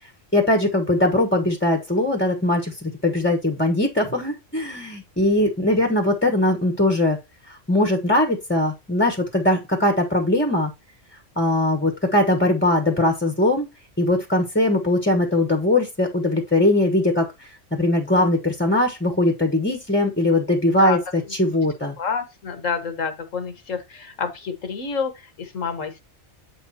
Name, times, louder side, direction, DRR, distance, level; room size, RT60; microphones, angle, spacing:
voice 1, 0.3-7.2 7.5-10.7 11.4-13.7 14.0-21.0 21.3-21.9, left 1 dB, 10° left, 1.0 m, -20 dB
voice 2, 22.0-26.0, left 5 dB, 85° left, 1.8 m, -28 dB
8.1 x 6.2 x 2.8 m
omnidirectional pair, 1.3 m